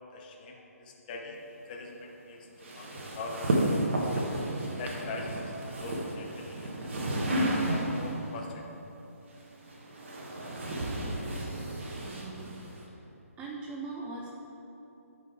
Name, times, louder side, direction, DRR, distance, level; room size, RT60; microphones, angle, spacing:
voice 1, 0.1-4.3 4.8-6.9 7.6-8.7 9.9-10.0, left 3 dB, 30° left, 1 dB, 0.9 m, -42 dB
sound 1, 2.6-8.2 9.3-12.8, right 1 dB, 50° right, 1.3 m, -32 dB
voice 2, 11.1-11.5 12.0-12.5 13.4-14.3, right 3 dB, 10° right, -2 dB, 0.5 m, -41 dB
11.5 x 5.2 x 3.4 m, 3.0 s
figure-of-eight pair, 140°, 8 cm